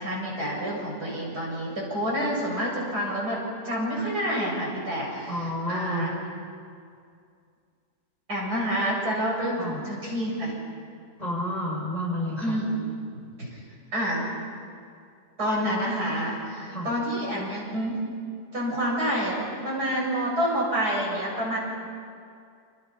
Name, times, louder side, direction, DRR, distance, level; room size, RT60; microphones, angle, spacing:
voice 1, 0.0-6.2 8.3-10.5 12.4-12.9 13.4-13.6 13.9-14.3 15.4-18.0 18.5-21.6, equal, 70° right, -4 dB, 8.2 m, -28 dB
voice 2, 5.3-6.1 9.6-9.8 11.2-12.6 16.7-16.9, left 1 dB, 25° left, -3 dB, 7.0 m, -30 dB
29.5 x 28.5 x 5.9 m, 2.3 s
omnidirectional pair, 1.8 m